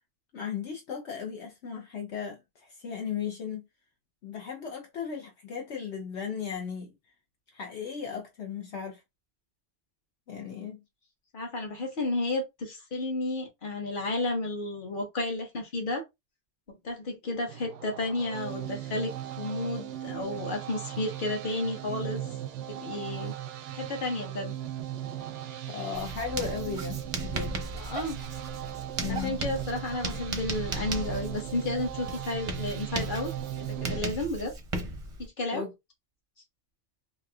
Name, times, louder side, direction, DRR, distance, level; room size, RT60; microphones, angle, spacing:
voice 1, 0.3-3.6 4.2-6.9 7.5-9.0 10.3-10.8 25.7-27.6 29.0-29.4 35.5-35.7, left 7 dB, 70° left, 1.1 m, -36 dB
voice 2, 11.3-16.0 16.8-19.1 19.4-22.2 22.7-23.3 23.7-24.6 27.7-28.2 29.1-33.3 33.6-34.5 35.4-35.7, left 2 dB, 45° left, 1.3 m, -32 dB
sound 1, 17.5-34.0, right 11 dB, 85° right, 0.9 m, -38 dB
Writing, 25.9-35.3, right 2 dB, 40° right, 0.6 m, -37 dB
3.6 x 2.7 x 2.3 m
omnidirectional pair, 1.2 m